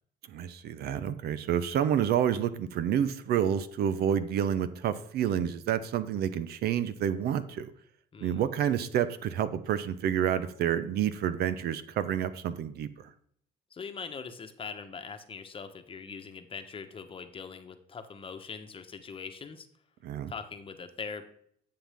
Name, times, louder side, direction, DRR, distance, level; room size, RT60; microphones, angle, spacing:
voice 1, 0.3-7.7 8.2-13.1 20.0-20.3, right 9 dB, 70° right, 13 dB, 0.8 m, -29 dB
voice 2, 13.7-19.7 20.3-21.2, left 5 dB, 30° left, 8 dB, 1.1 m, -42 dB
11.5 x 7.8 x 3.6 m, 0.65 s
cardioid pair, 110°, 17 cm